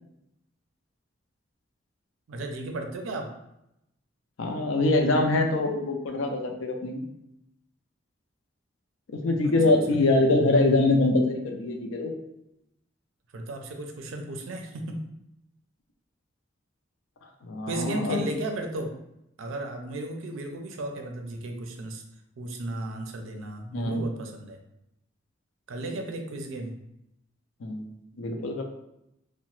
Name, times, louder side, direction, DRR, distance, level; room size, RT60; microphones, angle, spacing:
voice 1, 2.3-3.3 9.4-9.5 13.3-15.1 17.7-19.0 19.4-22.0 22.4-24.6 25.7-26.7, right 1 dB, 90° right, 4 dB, 0.4 m, -34 dB
voice 2, 4.4-7.0 9.1-12.1 17.4-18.2 23.7-24.1 27.6-27.8 28.2-28.6, left 2 dB, 85° left, 3 dB, 0.4 m, -24 dB
2.8 x 2.1 x 3.0 m, 0.84 s
head